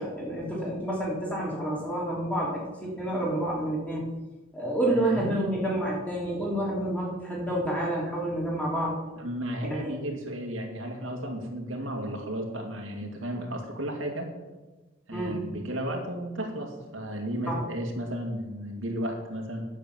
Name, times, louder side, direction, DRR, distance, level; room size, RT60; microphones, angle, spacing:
voice 1, 0.0-4.1 4.5-9.0 9.6-9.9 15.1-15.4 17.5-17.6, right 1 dB, 5° left, -4 dB, 3.1 m, -29 dB
voice 2, 4.9-5.4 9.2-14.3 15.1-19.7, equal, 80° right, 1 dB, 2.2 m, -33 dB
10.0 x 7.2 x 7.4 m, 1.2 s
head